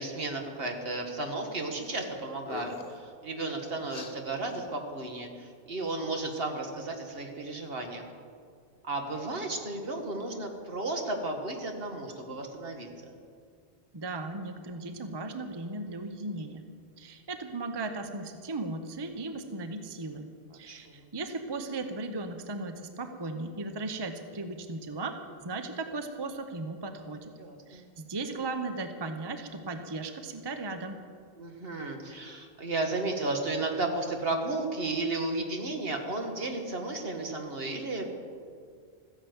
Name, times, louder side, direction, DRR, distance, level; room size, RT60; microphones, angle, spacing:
voice 1, 0.0-8.0 8.8-13.1 20.7-21.0 27.4-27.8 31.4-38.1, right 2 dB, 65° right, 3 dB, 1.9 m, -34 dB
sound 1, 1.8-2.1 2.4-3.0 3.9-4.1, left 5 dB, 65° left, 1.3 m, -43 dB
voice 2, 13.9-16.6 17.0-27.3 27.7-31.0, right 3 dB, 25° right, 7 dB, 0.8 m, -37 dB
14.5 x 10.0 x 7.9 m, 2.2 s
omnidirectional pair, 1.1 m